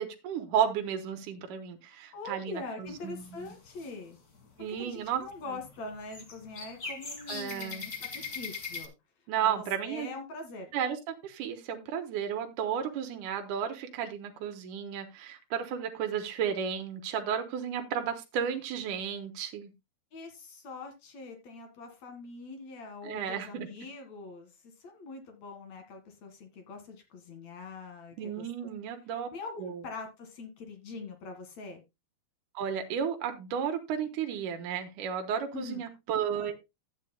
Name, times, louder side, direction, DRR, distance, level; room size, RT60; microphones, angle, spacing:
voice 1, 0.0-3.5 4.6-5.6 7.3-7.8 9.3-10.1 10.7-19.7 23.0-23.7 28.2-29.3 29.6-29.8 32.5-36.6, right 8 dB, 80° right, 5 dB, 2.6 m, -33 dB
voice 2, 2.1-4.2 4.8-8.9 9.4-10.7 20.1-28.5 29.3-31.8 35.5-35.8, left 3 dB, 60° left, 5 dB, 3.1 m, -43 dB
sound 1, 2.9-3.9 4.3-4.8 5.1-8.9, left 4 dB, 40° left, 1.6 m, -41 dB
13.5 x 8.8 x 2.2 m, 0.23 s
omnidirectional pair, 3.6 m